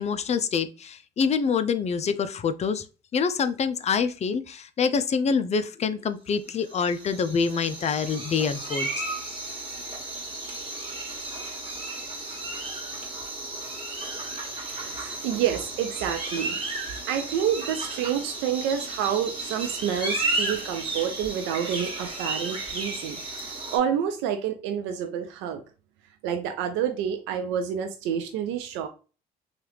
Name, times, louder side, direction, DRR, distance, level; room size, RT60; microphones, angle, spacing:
voice 1, 0.0-2.8 3.1-8.9, left 6 dB, 35° left, 0.4 m, -26 dB
sound 1, 6.5-23.8, right 2 dB, 30° right, 1.5 m, -33 dB
voice 2, 14.7-16.6 17.1-25.6 26.2-28.9, right 9 dB, 80° right, 0.4 m, -28 dB
3.0 x 2.4 x 3.1 m
supercardioid pair, 70°, 19 cm